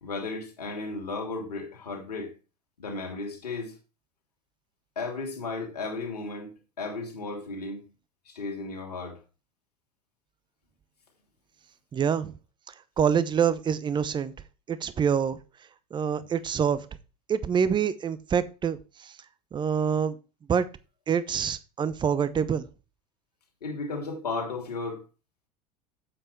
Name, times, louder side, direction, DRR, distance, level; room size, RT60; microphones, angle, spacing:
voice 1, 0.0-2.3 2.8-3.7 5.0-6.5 6.8-7.8 8.3-9.2 23.6-25.0, left 3 dB, 75° left, 2.9 m, -34 dB
voice 2, 11.9-12.3 13.0-14.3 14.7-15.4 15.9-16.8 17.3-19.1 19.5-20.1 20.5-20.7 21.1-22.7, right 7 dB, 20° right, 0.8 m, -26 dB
7.8 x 7.6 x 4.5 m
figure-of-eight pair, 75°, 20 cm